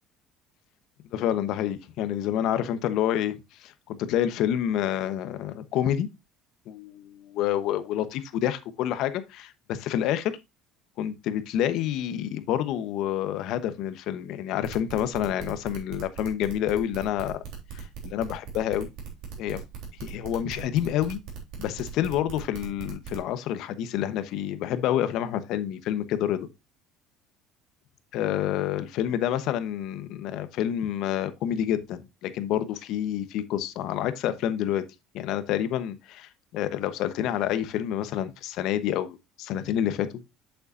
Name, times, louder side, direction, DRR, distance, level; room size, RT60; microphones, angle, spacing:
voice 1, 1.1-6.1 6.7-10.3 11.0-17.4 17.7-18.9 19.4-19.6 20.0-21.2 21.6-26.5 28.1-34.8 35.1-40.1, left 11 dB, 70° left, 1.0 m, -28 dB
sound 1, 14.6-23.3, right 7 dB, 75° right, 3.4 m, -39 dB
7.8 x 7.1 x 2.6 m
supercardioid pair, 95°, 0 cm